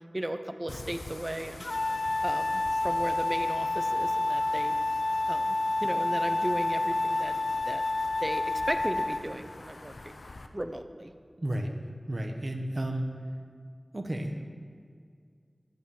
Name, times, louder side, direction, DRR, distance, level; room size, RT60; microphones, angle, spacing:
voice 1, 0.1-1.6 2.2-4.7 5.3-7.4 7.7-7.8 8.2-10.2 10.5-11.1, right 1 dB, 25° right, 7 dB, 1.0 m, -36 dB
sound 1, 0.7-10.5, left 2 dB, 85° left, 0.8 m, -47 dB
sound 2, 1.6-9.2, left 2 dB, 65° left, 1.0 m, -29 dB
voice 2, 11.4-11.7 12.1-13.2 13.9-14.5, right 1 dB, 45° right, 3 dB, 1.2 m, -32 dB
12.0 x 8.6 x 7.2 m, 2.1 s
wide cardioid pair, 55°, 0 cm